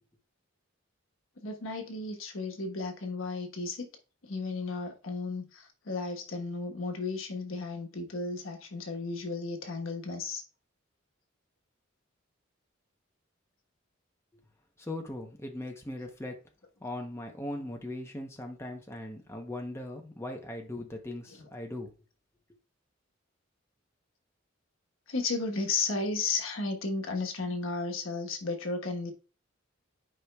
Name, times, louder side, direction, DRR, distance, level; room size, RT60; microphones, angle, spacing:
voice 1, 1.4-3.9 4.2-10.4 25.1-29.1, left 3 dB, 85° left, 1.2 m, -34 dB
voice 2, 14.8-16.4 16.8-21.9, left 1 dB, 15° left, 0.8 m, -39 dB
11.0 x 5.0 x 2.3 m
head